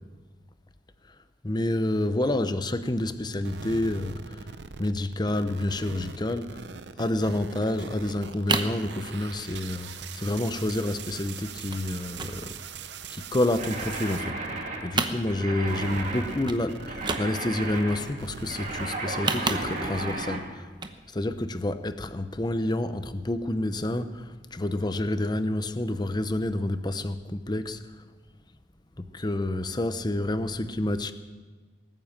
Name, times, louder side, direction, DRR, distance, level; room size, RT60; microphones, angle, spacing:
voice 1, 1.4-4.4 4.8-6.6 7.0-9.9 10.1-12.5 13.1-14.4 14.8-20.6 21.1-27.8 29.1-31.1, left 1 dB, 25° left, 0.7 m, -28 dB
sound 1, 3.4-15.4 15.6-20.2, right 5 dB, 65° right, 0.6 m, -42 dB
sound 2, 8.2-8.8 9.2-9.6 9.9-10.0 10.2-10.4 10.7-11.2 11.7-11.9 12.1-13.4 13.8-14.6 14.8-15.7 16.0-16.1 16.4-16.6 16.9-17.7 19.0-20.1 20.7-21.0 21.4-21.5, right 4 dB, 25° right, 0.9 m, -31 dB
sound 3, 13.6-20.4, right 2 dB, 40° right, 2.7 m, -35 dB
19.5 x 9.2 x 7.4 m
head